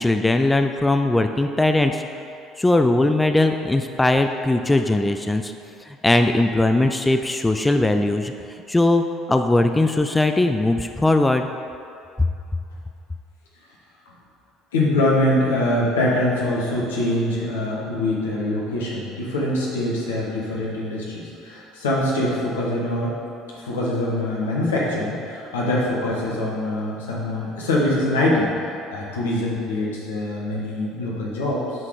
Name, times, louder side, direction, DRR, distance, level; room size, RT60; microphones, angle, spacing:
voice 1, 0.0-2.0 2.6-5.5 5.9-8.3 8.7-11.5, left 2 dB, 15° left, 6 dB, 0.4 m, -19 dB
voice 2, 14.7-23.1 23.5-28.5 28.9-31.7, left 1 dB, 85° left, -4 dB, 1.4 m, -23 dB
7.5 x 4.1 x 4.9 m, 2.6 s
hypercardioid pair, 65°, 0 cm